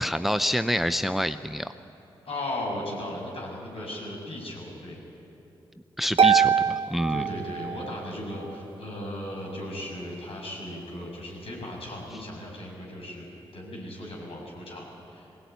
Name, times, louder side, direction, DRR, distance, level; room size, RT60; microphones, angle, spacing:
voice 1, 0.0-1.7 6.0-7.2, equal, ahead, 11 dB, 0.7 m, -27 dB
voice 2, 2.2-5.0 7.1-13.3 13.5-15.4, left 1 dB, 65° left, -1 dB, 7.5 m, -36 dB
Harp, 6.2-8.1, right 7 dB, 55° right, 1.2 m, -23 dB
20.5 x 18.0 x 9.5 m, 2.9 s
supercardioid pair, 45°, 11 cm